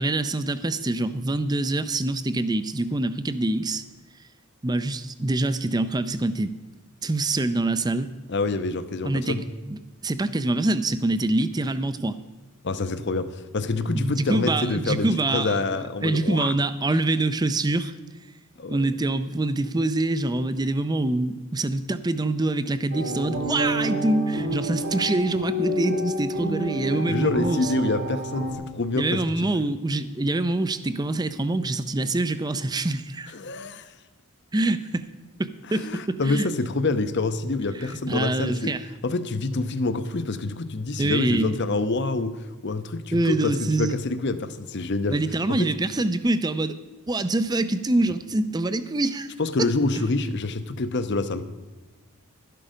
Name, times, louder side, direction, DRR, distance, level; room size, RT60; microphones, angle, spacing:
voice 1, 0.0-3.8 4.6-6.5 7.0-8.1 9.0-12.2 13.9-15.6 16.0-17.9 18.7-27.7 28.9-33.3 34.5-35.0 35.4-36.5 38.1-38.8 41.0-41.6 43.1-44.0 45.1-46.8 47.1-49.3, right 2 dB, 20° right, 13 dB, 0.5 m, -25 dB
voice 2, 8.3-9.4 12.6-16.5 18.6-18.9 26.9-29.5 33.3-33.9 35.7-38.7 39.0-45.2 45.5-45.7 49.4-51.5, left 3 dB, 50° left, 11 dB, 0.7 m, -27 dB
sound 1, 22.9-28.5, equal, 90° right, 3.7 m, -29 dB
12.0 x 11.5 x 5.1 m, 1.2 s
head